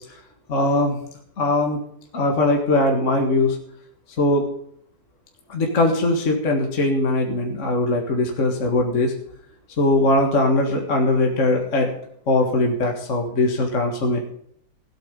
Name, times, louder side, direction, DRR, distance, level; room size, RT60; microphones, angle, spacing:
voice 1, 0.5-1.0 1.4-1.8 2.1-3.6 4.2-4.4 5.5-9.1 9.8-11.9 12.3-14.2, left 2 dB, 45° left, 1 dB, 2.1 m, -20 dB
16.0 x 8.9 x 5.3 m, 0.67 s
omnidirectional pair, 1.8 m